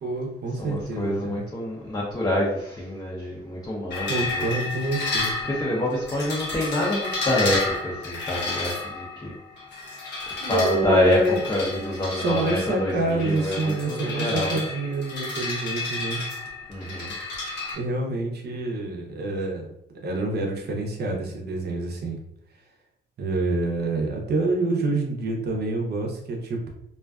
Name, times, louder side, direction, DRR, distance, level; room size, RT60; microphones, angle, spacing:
voice 1, 0.0-1.4 4.1-5.3 10.4-11.4 12.1-16.2 17.8-19.7 20.0-22.2 23.2-26.7, right 2 dB, 55° right, 1 dB, 0.6 m, -27 dB
voice 2, 0.6-4.5 5.4-9.3 10.4-14.6 16.7-17.1, left 1 dB, 20° left, -5 dB, 0.6 m, -26 dB
sound 1, 3.9-17.7, left 3 dB, 60° left, 0.7 m, -31 dB
2.4 x 2.3 x 2.3 m, 0.77 s
cardioid pair, 90°, 20 cm